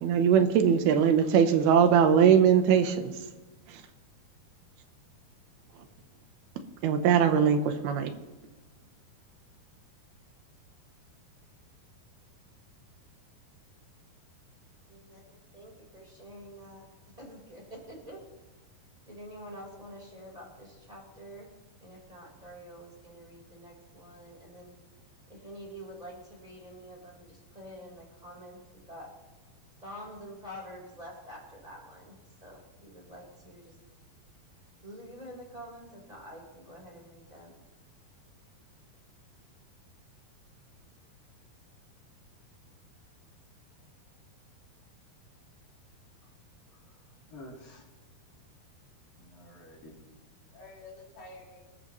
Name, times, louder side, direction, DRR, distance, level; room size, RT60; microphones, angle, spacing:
voice 1, 0.0-3.1 3.7-3.8 6.8-8.1, right 8 dB, 80° right, 8 dB, 2.8 m, -21 dB
voice 2, 14.9-16.9 17.2-18.2 19.1-21.5 21.8-24.7 25.3-28.6 28.9-29.1 29.8-33.8 34.8-37.6, equal, 10° right, -2 dB, 3.9 m, -47 dB
voice 3, 47.3-47.8 49.2-49.9 50.5-51.7, left 2 dB, 60° left, -3 dB, 4.9 m, -49 dB
24.5 x 13.0 x 3.1 m, 1.2 s
omnidirectional pair, 4.5 m